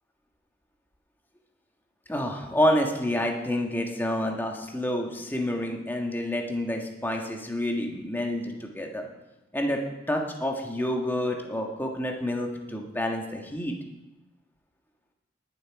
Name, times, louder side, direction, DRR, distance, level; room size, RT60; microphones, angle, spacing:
voice 1, 2.1-9.1 9.5-9.8 10.1-13.7, left 1 dB, 10° left, 2 dB, 1.4 m, -28 dB
19.0 x 7.4 x 4.7 m, 1.0 s
head